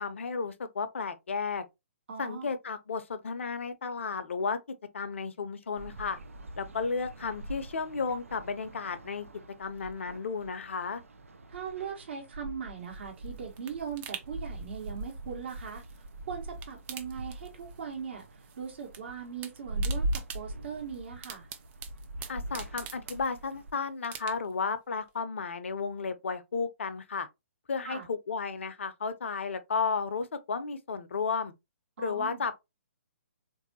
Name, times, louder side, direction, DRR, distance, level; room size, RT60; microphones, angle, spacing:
voice 1, 0.0-1.6 2.2-4.6 4.9-6.2 6.6-9.3 9.6-11.0 22.3-27.3 27.7-31.5 32.0-32.6, left 5 dB, 60° left, 0.6 m, -33 dB
voice 2, 2.1-2.5 11.5-18.2 18.6-21.5 27.8-28.0 32.0-32.4, right 7 dB, 55° right, 1.2 m, -40 dB
sound 1, 5.8-23.7, right 1 dB, 75° right, 0.6 m, -41 dB
sound 2, 12.8-16.1 16.4-17.9 18.2-19.0 19.3-23.6 24.0-24.7 25.1-25.2, right 8 dB, 20° right, 0.5 m, -46 dB
3.6 x 2.6 x 2.7 m
figure-of-eight pair, 130°, 7 cm